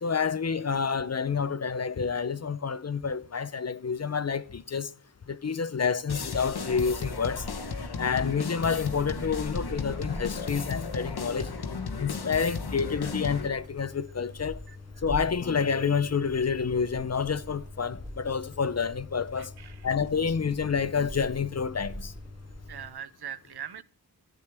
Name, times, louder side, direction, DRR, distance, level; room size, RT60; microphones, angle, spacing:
voice 1, 0.0-4.9 5.3-7.4 8.0-11.5 12.0-14.6 15.0-19.5 19.8-22.1, left 6 dB, 45° left, 0.6 m, -28 dB
sound 1, 6.1-13.5, left 4 dB, 80° left, 1.1 m, -35 dB
sound 2, 6.5-22.9, left 1 dB, 20° right, 2.8 m, -43 dB
voice 2, 22.7-23.8, right 8 dB, 80° right, 0.6 m, -40 dB
13.0 x 8.4 x 3.4 m
wide cardioid pair, 80°, 38 cm